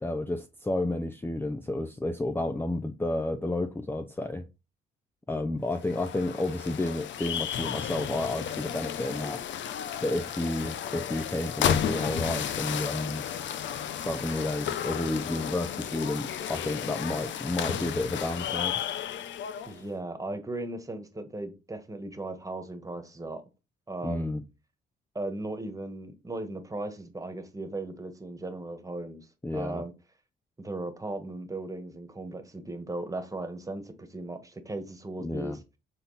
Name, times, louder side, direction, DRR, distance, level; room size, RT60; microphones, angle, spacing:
voice 1, 0.0-4.4 5.3-9.4 10.0-13.3 14.0-18.8 24.0-24.4 29.4-29.8 35.2-35.6, left 2 dB, 10° left, 0.5 m, -31 dB
sound 1, 5.7-19.8, left 9 dB, 70° left, 0.7 m, -33 dB
voice 2, 19.6-23.4 23.9-24.3 25.1-29.3 29.5-29.9 30.6-35.6, right 2 dB, 15° right, 1.5 m, -37 dB
7.7 x 4.1 x 4.1 m
cardioid pair, 90°, 20 cm